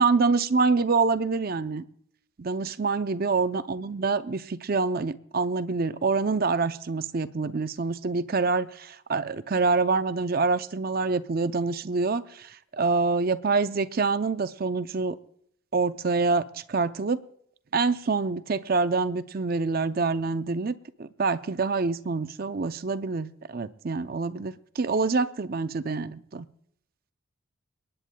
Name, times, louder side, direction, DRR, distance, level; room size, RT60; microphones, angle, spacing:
voice 1, 0.0-1.8 2.4-15.2 15.7-17.2 17.7-26.5, right 4 dB, 45° right, 12 dB, 0.5 m, -26 dB
29.0 x 9.9 x 2.3 m, 0.69 s
head